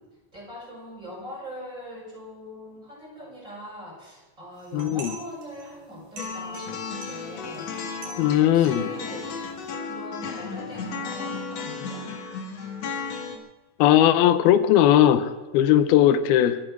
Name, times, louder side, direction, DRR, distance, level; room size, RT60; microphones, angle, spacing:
voice 1, 0.3-7.7 8.0-9.3 9.9-12.1, equal, 20° right, 6.8 m, -41 dB
sound 1, 4.5-9.7, right 3 dB, 85° right, 4.9 m, -46 dB
voice 2, 4.7-5.1 8.2-8.9 13.8-16.6, left 11 dB, 85° left, 2.8 m, -18 dB
sound 2, 6.2-13.4, left 5 dB, 50° left, 2.6 m, -34 dB
24.5 x 9.2 x 6.2 m
omnidirectional pair, 4.3 m